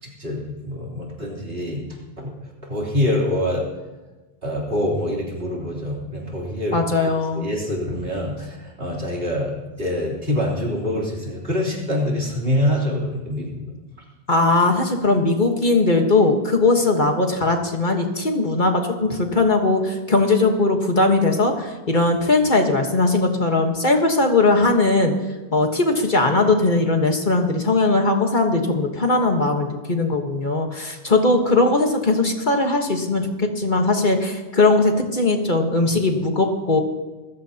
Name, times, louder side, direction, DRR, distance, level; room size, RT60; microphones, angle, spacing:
voice 1, 0.0-1.8 2.2-2.3 2.7-3.7 4.4-6.9 7.3-13.7, left 1 dB, 60° right, -4 dB, 3.8 m, -25 dB
voice 2, 6.7-7.5 14.3-25.1 25.5-36.8, left 2 dB, 45° left, 3 dB, 1.6 m, -19 dB
26.0 x 15.0 x 2.9 m, 1.2 s
omnidirectional pair, 1.1 m